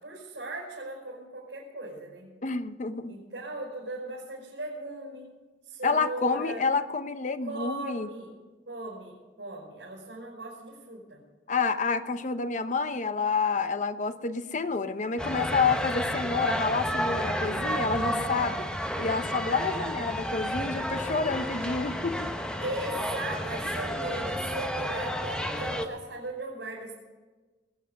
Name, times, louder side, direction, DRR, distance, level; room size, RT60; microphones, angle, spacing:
voice 1, 0.0-2.3 3.1-5.3 5.6-6.6 7.4-8.3 8.7-11.2 22.6-26.9, right 2 dB, 85° right, -6 dB, 5.0 m, -38 dB
voice 2, 2.4-3.1 5.8-8.1 11.5-18.7 19.0-22.3, left 4 dB, 45° left, 10 dB, 0.8 m, -29 dB
sound 1, 15.2-25.9, equal, 5° left, 1.0 m, -31 dB
21.5 x 8.3 x 6.5 m, 1.3 s
head